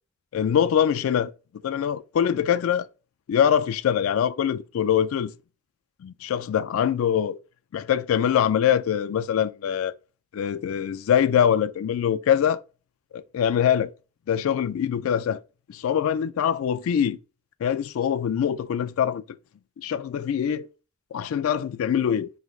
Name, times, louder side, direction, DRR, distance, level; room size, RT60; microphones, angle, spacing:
voice 1, 0.3-1.3 1.6-2.9 3.3-5.3 6.0-7.4 7.7-9.9 10.3-12.6 13.1-13.9 14.3-15.4 15.7-17.2 17.6-19.2 19.8-20.7 21.1-22.3, left 8 dB, 90° left, 0.3 m, -23 dB
4.8 x 3.1 x 2.4 m
head